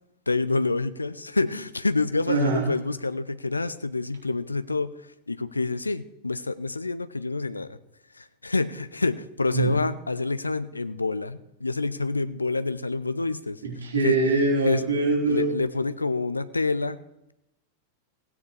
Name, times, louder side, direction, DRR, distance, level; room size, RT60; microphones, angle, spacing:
voice 1, 0.3-4.9 5.3-7.8 8.2-13.6 14.0-14.2 14.7-14.9 15.2-17.0, left 3 dB, 80° left, 14 dB, 0.5 m, -27 dB
voice 2, 2.3-2.7 9.5-9.7 13.6-15.5, right 3 dB, 70° right, -2 dB, 3.5 m, -23 dB
16.5 x 9.5 x 3.2 m, 0.86 s
figure-of-eight pair, 90°, 0 cm